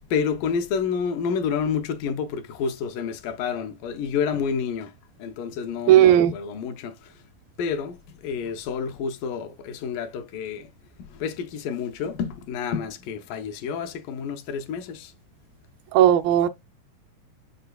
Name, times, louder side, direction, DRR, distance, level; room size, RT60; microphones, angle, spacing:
voice 1, 0.1-4.9 5.2-7.2 7.6-10.7 11.0-15.1, left 6 dB, 75° left, 2.3 m, -29 dB
voice 2, 5.9-6.3 15.9-16.5, right 11 dB, 80° right, 2.2 m, -15 dB
7.9 x 6.0 x 2.3 m
omnidirectional pair, 4.2 m